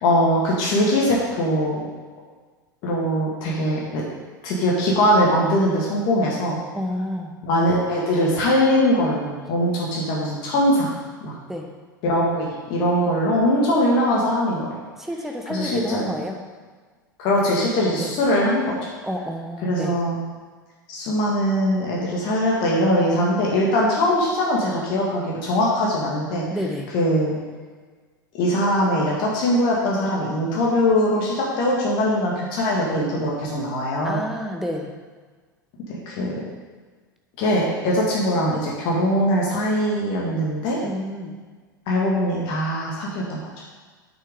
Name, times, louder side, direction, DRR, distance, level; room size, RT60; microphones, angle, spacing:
voice 1, 0.0-1.8 2.8-4.0 4.4-6.6 7.4-10.9 11.2-11.3 12.0-14.7 15.5-16.0 17.2-18.8 19.6-20.2 20.9-26.4 26.9-27.4 28.4-34.2 35.9-36.4 37.4-40.8 41.9-43.4, equal, 45° left, -4 dB, 2.0 m, -21 dB
voice 2, 6.7-7.3 11.5-11.7 15.0-16.4 18.0-18.1 19.0-20.0 26.5-26.9 34.0-34.9 40.8-41.4, equal, 5° right, 2 dB, 1.1 m, -29 dB
8.9 x 6.7 x 3.7 m, 1.4 s
figure-of-eight pair, 80°, 11 cm